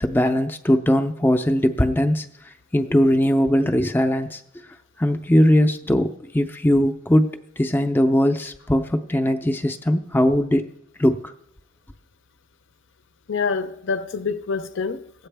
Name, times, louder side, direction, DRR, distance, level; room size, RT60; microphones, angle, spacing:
voice 1, 0.0-2.3 2.7-4.4 5.0-7.3 7.6-10.7 11.0-11.3, equal, 10° left, 0.4 m, -20 dB
voice 2, 13.3-15.3, left 5 dB, 60° left, 0.6 m, -27 dB
19.0 x 8.0 x 3.4 m
head